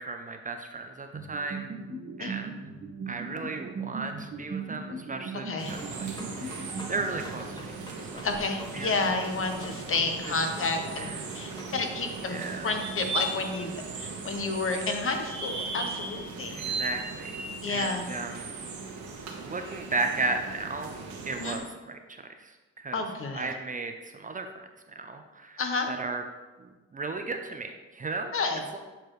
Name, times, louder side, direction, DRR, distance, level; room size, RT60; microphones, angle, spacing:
voice 1, 0.0-1.8 2.2-2.5 3.1-7.6 8.1-8.3 8.7-8.9 11.0-11.1 12.2-12.8 16.5-17.4 17.7-18.5 19.4-20.9 21.2-23.0 23.3-24.7 25.0-25.6 25.9-26.2 26.6-28.3 28.7-28.8, right 3 dB, 25° right, 5 dB, 0.5 m, -35 dB
sound 1, 1.1-7.8, right 4 dB, 40° right, 1.2 m, -39 dB
voice 2, 5.4-5.8 8.2-11.1 11.3-12.4 12.6-16.6 17.6-18.0 21.4-21.6 22.9-23.5 25.6-25.9 28.3-28.6, left 3 dB, 45° left, 5 dB, 1.0 m, -30 dB
sound 2, 5.6-21.6, right 3 dB, 70° right, 1.3 m, -38 dB
sound 3, 5.8-11.7, left 1 dB, 15° left, 0.9 m, -46 dB
8.3 x 4.4 x 3.1 m, 1.2 s
cardioid pair, 90°, 30 cm